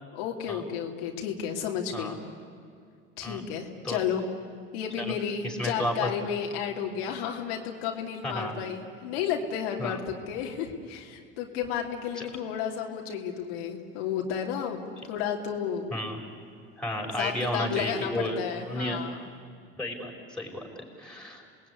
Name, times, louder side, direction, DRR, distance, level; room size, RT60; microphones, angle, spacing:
voice 1, 0.1-2.2 3.2-4.2 4.7-14.8 15.1-15.8 17.2-19.3, left 8 dB, 80° left, 1 dB, 2.9 m, -32 dB
voice 2, 5.4-6.1 8.2-8.6 9.8-10.0 12.2-12.3 15.9-16.2 16.8-19.0 19.7-21.4, left 1 dB, 5° left, 0 dB, 5.8 m, -32 dB
27.5 x 20.0 x 9.7 m, 2.3 s
supercardioid pair, 100°, 30 cm